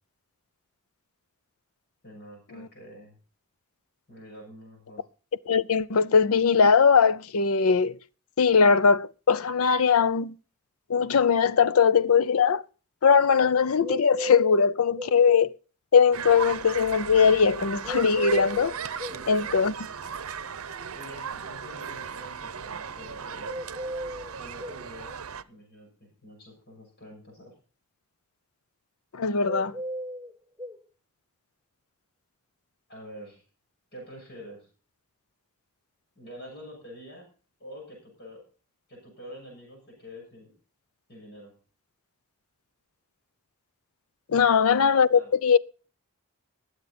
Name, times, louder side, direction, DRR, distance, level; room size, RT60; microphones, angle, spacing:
voice 1, 2.0-3.2 4.1-5.0 19.1-19.7 20.9-23.5 24.4-25.1 25.5-27.5 32.9-33.4 33.9-34.7 36.1-37.3 37.6-38.5 38.9-40.5 41.1-41.5 44.4-44.8 45.1-45.3, equal, 45° left, 6.5 m, -46 dB
voice 2, 5.5-8.0 8.4-10.3 10.9-12.6 13.0-15.5 15.9-18.8 19.3-19.7 29.1-29.8 44.3-45.6, left 6 dB, 70° left, 0.6 m, -20 dB
sound 1, 13.8-15.2 17.8-19.2 23.4-24.8 29.4-30.8, equal, 5° right, 0.8 m, -35 dB
sound 2, 16.1-25.4, right 6 dB, 70° right, 0.7 m, -37 dB
20.0 x 8.0 x 4.2 m
head